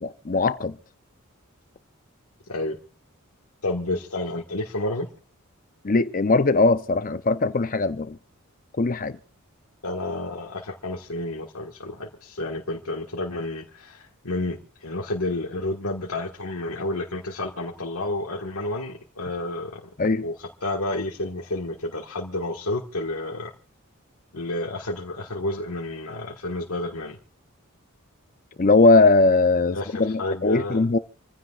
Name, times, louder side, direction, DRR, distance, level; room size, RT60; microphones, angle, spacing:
voice 1, 0.0-0.8 5.8-8.2 8.8-9.2 20.0-20.3 28.6-31.0, left 3 dB, 40° left, 0.6 m, -20 dB
voice 2, 2.5-2.8 3.6-5.1 9.8-19.8 20.2-23.5 24.3-27.2 29.7-30.8, left 2 dB, 85° left, 1.6 m, -30 dB
28.5 x 15.5 x 2.4 m
head